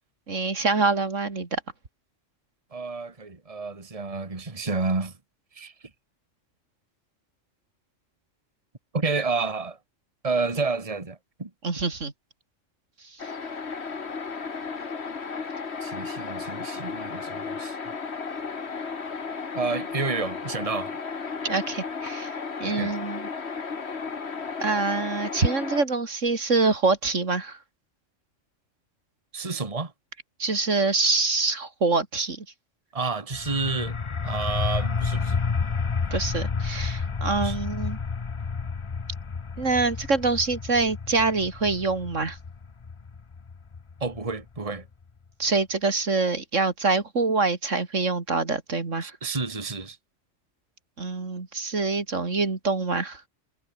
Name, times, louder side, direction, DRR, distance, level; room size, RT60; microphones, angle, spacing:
voice 1, 0.3-1.6 11.6-12.1 21.4-23.3 24.6-27.6 30.4-32.4 36.1-38.0 39.6-42.4 45.4-49.1 51.0-53.2, right 3 dB, 75° right, 3.2 m, -25 dB
voice 2, 2.7-5.1 5.5-5.7 8.9-9.8 10.2-11.5 15.8-17.8 19.5-21.0 22.8-22.9 29.3-29.9 32.9-34.0 34.2-35.4 37.4-37.6 44.0-44.9 49.0-50.0, right 4 dB, 30° right, 2.1 m, -30 dB
sound 1, 13.2-25.8, left 5 dB, 60° left, 2.0 m, -34 dB
sound 2, 33.3-44.8, left 5 dB, 30° left, 0.7 m, -30 dB
omnidirectional pair, 1.3 m